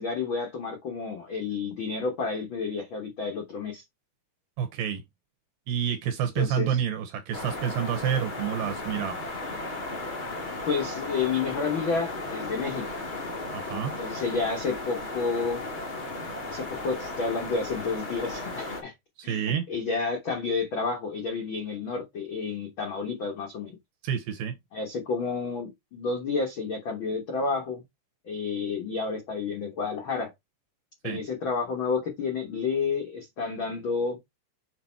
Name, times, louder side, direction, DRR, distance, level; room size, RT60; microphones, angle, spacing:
voice 1, 0.0-3.8 6.4-6.8 10.5-13.0 14.0-15.6 16.5-18.9 19.2-23.8 24.7-27.8 28.2-30.3 31.0-34.2, left 4 dB, 70° left, 1.2 m, -30 dB
voice 2, 4.6-5.0 5.7-9.2 13.5-13.9 19.3-19.6 24.0-24.5 31.0-31.2, right 8 dB, 80° right, 2.6 m, -28 dB
sound 1, 7.3-18.8, left 2 dB, 20° left, 1.6 m, -35 dB
6.8 x 4.1 x 4.4 m
omnidirectional pair, 4.2 m